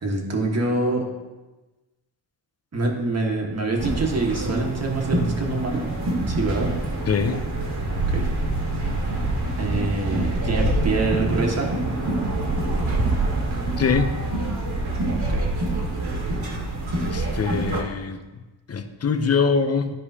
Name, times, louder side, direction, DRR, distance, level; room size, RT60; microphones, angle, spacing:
voice 1, 0.0-1.0 2.7-5.9 6.3-6.8 7.9-8.3 9.6-11.7 15.1-15.5, right 2 dB, 35° right, 0 dB, 1.5 m, -25 dB
sound 1, 3.8-17.8, right 2 dB, 65° right, 1.8 m, -25 dB
voice 2, 7.1-7.4 13.8-14.1 17.0-18.2 18.7-19.9, left 5 dB, 35° left, 8 dB, 0.7 m, -23 dB
13.0 x 4.9 x 2.8 m, 1.1 s
wide cardioid pair, 110°, 44 cm